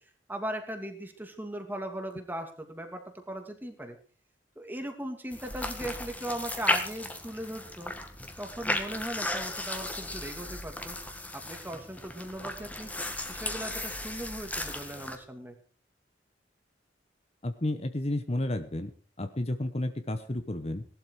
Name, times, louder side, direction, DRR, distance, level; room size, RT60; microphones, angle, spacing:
voice 1, 0.3-4.0 4.6-7.9 8.4-11.0 11.3-12.9 13.3-15.6, right 1 dB, 10° right, 5 dB, 2.6 m, -38 dB
sound 1, 5.3-15.2, left 1 dB, 10° left, 1.9 m, -35 dB
voice 2, 17.4-18.9 19.2-20.8, left 1 dB, 35° left, 9 dB, 0.9 m, -31 dB
18.0 x 12.0 x 4.8 m, 0.40 s
head